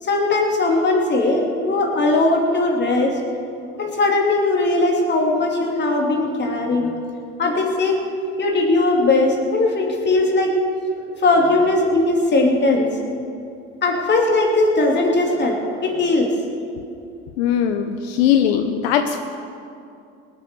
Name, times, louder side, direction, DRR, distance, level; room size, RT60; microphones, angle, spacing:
voice 1, 0.0-3.2 3.8-7.0 7.4-8.0 8.4-10.6 11.2-12.9 13.8-16.3, left 2 dB, 35° left, 1 dB, 3.0 m, -19 dB
voice 2, 17.4-19.3, left 9 dB, 80° left, 7 dB, 0.9 m, -19 dB
19.0 x 9.1 x 7.0 m, 2.6 s
hypercardioid pair, 85°, 31 cm